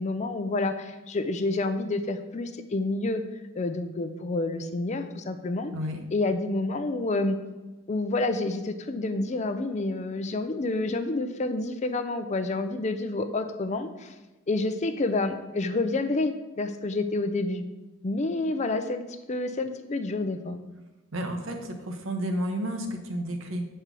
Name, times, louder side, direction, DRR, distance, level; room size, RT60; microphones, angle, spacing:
voice 1, 0.0-3.2 3.5-5.7 6.1-7.4 7.9-14.1 14.5-17.6 18.0-19.0 19.3-20.6, left 2 dB, 35° left, 9 dB, 0.5 m, -28 dB
voice 2, 21.1-23.6, equal, 85° right, 5 dB, 0.9 m, -31 dB
5.2 x 4.3 x 6.1 m, 1.1 s
head